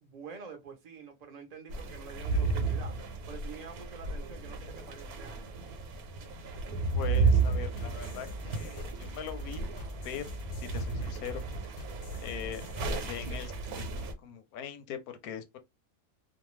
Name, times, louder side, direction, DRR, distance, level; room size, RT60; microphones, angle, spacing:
voice 1, 0.0-2.9 3.3-5.6, right 5 dB, 45° right, 0.5 m, -47 dB
sound 1, 1.7-14.1, right 4 dB, 85° right, 1.2 m, -33 dB
voice 2, 6.9-9.6 10.0-11.5 12.2-13.5 13.9-15.6, left 9 dB, 90° left, 1.1 m, -41 dB
sound 2, 6.9-13.8, left 1 dB, 70° left, 0.4 m, -44 dB
2.6 x 2.2 x 3.0 m
omnidirectional pair, 1.5 m